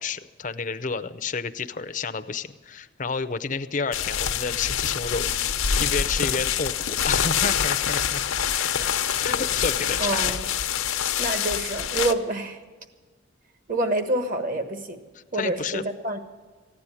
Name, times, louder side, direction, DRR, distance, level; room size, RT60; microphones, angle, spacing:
voice 1, 0.0-8.3 8.6-8.7 9.2-10.4 15.1-15.9, left 5 dB, 40° left, 11 dB, 0.6 m, -30 dB
sound 1, 3.9-12.1, left 8 dB, 90° left, 0.8 m, -25 dB
voice 2, 10.0-10.4 11.2-12.6 13.7-15.0 15.3-16.2, right 2 dB, 40° right, 8 dB, 1.3 m, -27 dB
15.0 x 9.7 x 8.9 m, 1.4 s
head